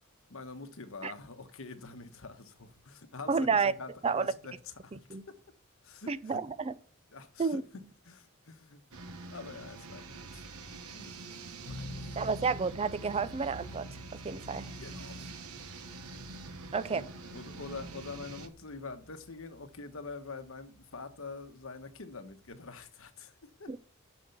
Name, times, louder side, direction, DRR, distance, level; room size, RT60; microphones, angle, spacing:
voice 1, 0.3-5.0 5.3-5.4 5.8-6.4 7.1-7.6 8.1-8.8 9.3-10.4 10.9-11.1 11.6-12.2 14.8-15.3 16.9-17.1 17.3-23.7, left 4 dB, 65° left, 1.2 m, -45 dB
voice 2, 3.3-3.7 4.0-4.3 5.1-5.2 6.1-6.7 7.4-7.6 12.2-13.9 14.2-14.7 16.7-17.1 23.7-23.8, right 5 dB, 25° right, 0.4 m, -30 dB
sound 1, 8.9-18.5, right 3 dB, 75° right, 1.2 m, -46 dB
sound 2, 11.7-22.8, left 1 dB, 80° left, 1.3 m, -50 dB
7.2 x 6.9 x 7.0 m
head